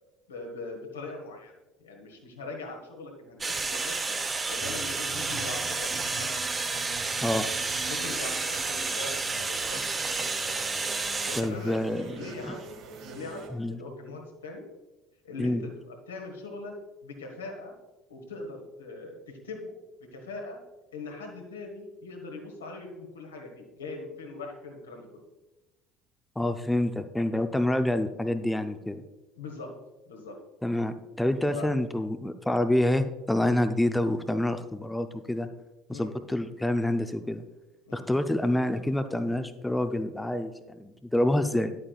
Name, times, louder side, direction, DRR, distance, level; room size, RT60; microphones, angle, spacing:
voice 1, 0.3-1.5 1.8-4.2 4.5-6.3 7.9-9.9 11.2-14.6 15.2-16.7 17.0-17.7 18.1-19.7 20.1-20.6 20.9-25.1 29.4-29.7 30.1-30.4 31.5-31.7 35.9-36.1 37.9-38.1, left 3 dB, 75° left, 2 dB, 1.5 m, -41 dB
sound 1, 3.4-11.4, right 3 dB, 25° right, 0.8 m, -30 dB
sound 2, 4.6-13.5, right 5 dB, 55° right, 1.0 m, -44 dB
voice 2, 7.2-7.5 11.3-12.1 12.4-12.6 13.5-13.8 15.4-15.6 26.4-29.0 30.6-35.5 35.9-37.4 37.9-41.7, left 1 dB, 5° left, 9 dB, 0.6 m, -27 dB
10.5 x 8.5 x 2.4 m, 1.1 s
figure-of-eight pair, 60°, 0 cm